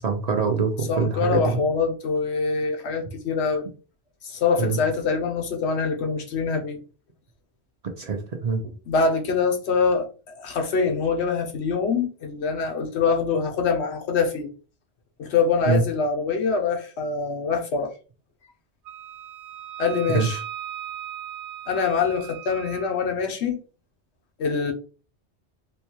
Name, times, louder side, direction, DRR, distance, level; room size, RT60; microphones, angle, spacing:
voice 1, 0.0-1.6 4.6-4.8 8.0-8.6 15.7-15.8 20.1-20.3, right 5 dB, 50° right, 0.5 m, -24 dB
voice 2, 0.9-3.7 4.2-6.8 8.9-14.5 15.2-17.9 19.8-20.4 21.7-23.6 24.4-24.7, left 5 dB, 75° left, 1.0 m, -24 dB
Wind instrument woodwind instrument, 18.9-22.9, right 11 dB, 85° right, 0.9 m, -37 dB
3.5 x 2.3 x 2.9 m
omnidirectional pair, 1.2 m